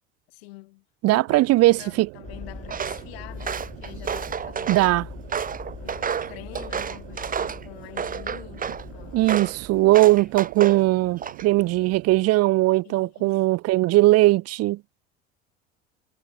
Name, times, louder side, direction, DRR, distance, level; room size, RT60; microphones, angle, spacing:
voice 1, 0.3-4.8 5.8-9.3 9.7-9.9 10.2-10.3 12.8-13.5, left 23 dB, 75° left, 3.4 m, -46 dB
voice 2, 1.0-2.1 4.7-5.1 9.1-14.8, right 18 dB, 50° right, 0.7 m, -19 dB
sound 1, 1.3-12.3, right 31 dB, 75° right, 3.3 m, -45 dB
sound 2, 2.2-10.6, left 5 dB, 25° left, 3.3 m, -42 dB
Walk footsteps, 2.7-3.0 3.4-4.9 5.3-7.6 8.0-8.8 9.3-9.6 9.9-10.8 11.2-11.6, right 7 dB, 25° right, 1.3 m, -30 dB
hypercardioid pair, 80°, 31 cm